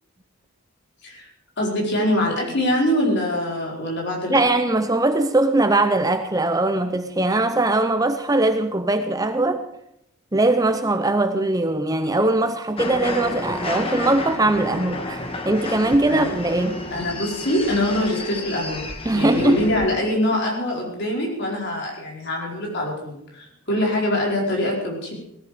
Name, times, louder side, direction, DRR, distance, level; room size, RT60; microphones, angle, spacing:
voice 1, 1.6-4.4 16.1-16.3 16.9-18.8 19.1-25.1, left 1 dB, 50° left, 4.7 m, -24 dB
voice 2, 4.3-9.6 10.3-16.8 19.1-19.6, right 2 dB, 15° right, 0.7 m, -20 dB
sound 1, 12.8-20.0, left 2 dB, 25° left, 1.5 m, -31 dB
18.5 x 13.5 x 5.0 m
head